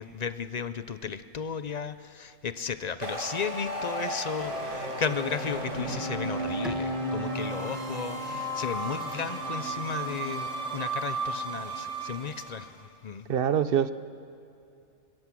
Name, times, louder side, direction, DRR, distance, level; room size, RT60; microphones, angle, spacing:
voice 1, 0.0-13.3, left 6 dB, 45° left, 13 dB, 0.5 m, -34 dB
sound 1, 3.0-12.7, right 1 dB, 75° right, 2.9 m, -33 dB
Bowed string instrument, 6.6-9.9, right 1 dB, ahead, 0.9 m, -43 dB
voice 2, 13.3-13.9, right 8 dB, 55° right, 13 dB, 0.8 m, -24 dB
26.5 x 16.5 x 7.5 m, 2.5 s
omnidirectional pair, 1.3 m